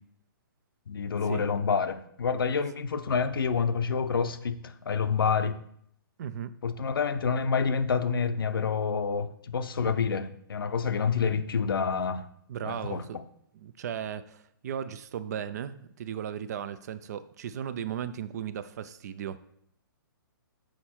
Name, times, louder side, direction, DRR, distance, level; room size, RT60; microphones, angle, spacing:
voice 1, 0.9-5.6 6.6-12.2 12.6-13.2, left 5 dB, 90° left, 0.6 m, -28 dB
voice 2, 6.2-6.5 9.8-9.9 12.5-13.1 13.5-19.4, right 9 dB, 50° right, 0.4 m, -36 dB
6.5 x 4.4 x 4.4 m
hypercardioid pair, 150°, 12 cm